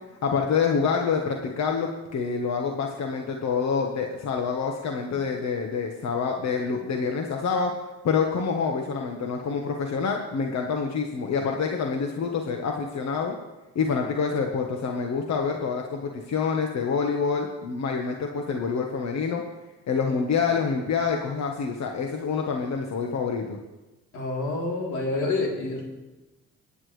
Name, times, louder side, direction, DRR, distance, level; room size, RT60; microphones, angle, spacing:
voice 1, 0.2-7.7 8.0-13.3 13.7-19.4 19.9-23.6, left 5 dB, 65° left, 2 dB, 1.5 m, -27 dB
voice 2, 24.1-25.8, left 2 dB, 90° left, -2 dB, 3.7 m, -28 dB
24.0 x 10.0 x 3.4 m, 1.1 s
cardioid pair, 90°, 30 cm